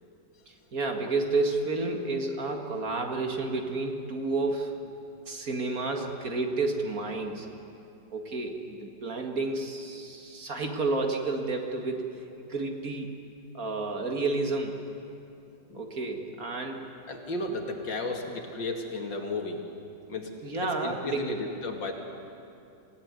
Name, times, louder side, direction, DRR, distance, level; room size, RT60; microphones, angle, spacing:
voice 1, 0.7-4.7 5.3-7.5 8.1-12.1 12.4-13.2 13.5-14.8 15.7-16.8 20.4-21.3, right 3 dB, 50° right, 3 dB, 2.4 m, -30 dB
voice 2, 17.1-19.6 20.1-20.3 20.6-21.9, left 2 dB, 90° left, 2 dB, 3.1 m, -34 dB
27.0 x 17.0 x 9.7 m, 2.7 s
omnidirectional pair, 2.0 m